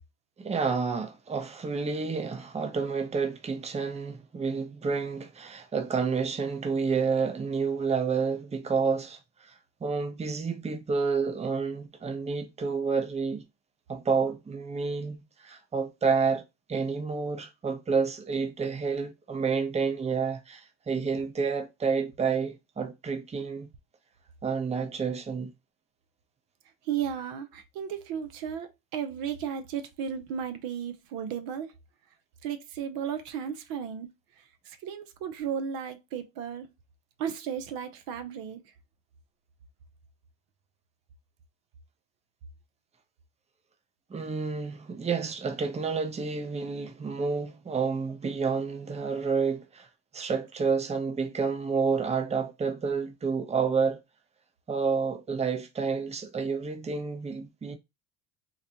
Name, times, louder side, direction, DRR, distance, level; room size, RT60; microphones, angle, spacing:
voice 1, 0.4-9.5 9.8-13.4 13.9-16.4 16.7-23.7 24.4-25.5 44.1-49.9 50.1-54.0 54.7-57.8, right 5 dB, 20° right, 0.7 m, -29 dB
voice 2, 26.8-31.7 32.4-36.7 37.2-38.6, right 8 dB, 70° right, 0.7 m, -34 dB
4.0 x 2.1 x 2.8 m
supercardioid pair, 85°, 36 cm